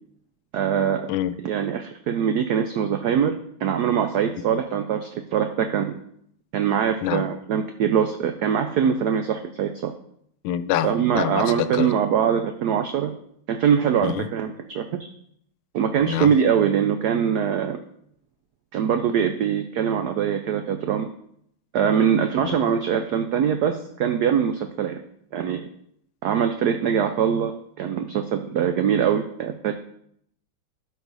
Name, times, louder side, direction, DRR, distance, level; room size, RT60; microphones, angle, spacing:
voice 1, 0.5-1.1 1.4-3.3 3.6-6.0 6.5-9.9 10.8-13.1 13.5-15.1 15.7-17.8 18.7-21.1 21.7-25.0 25.3-25.6 26.2-27.5 27.8-29.7, right 8 dB, 75° right, 6 dB, 0.9 m, -23 dB
voice 2, 10.4-10.9 11.1-11.9 14.0-14.3 16.0-16.3 22.6-22.7, left 11 dB, 85° left, 13 dB, 1.4 m, -25 dB
12.5 x 4.8 x 4.0 m, 0.70 s
omnidirectional pair, 2.2 m